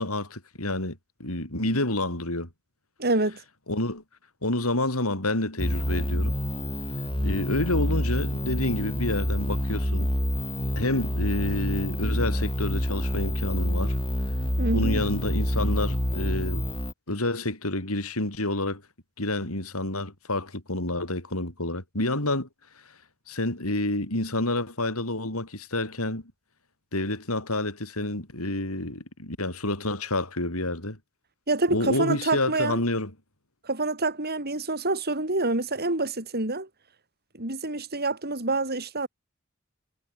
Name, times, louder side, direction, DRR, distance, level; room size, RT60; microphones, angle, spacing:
voice 1, 0.0-2.5 3.7-4.0 4.4-6.4 7.2-10.1 10.8-13.9 14.7-16.6 17.1-18.8 19.2-22.5 22.8-22.9 23.3-26.3 26.9-31.0 31.7-33.1, left 1 dB, 85° left, 7.9 m, -29 dB
voice 2, 3.0-3.4 14.6-15.0 31.5-32.8 33.6-36.7 37.3-39.1, right 2 dB, 50° right, 7.0 m, -27 dB
sound 1, 5.6-16.9, equal, 25° left, 6.0 m, -27 dB
head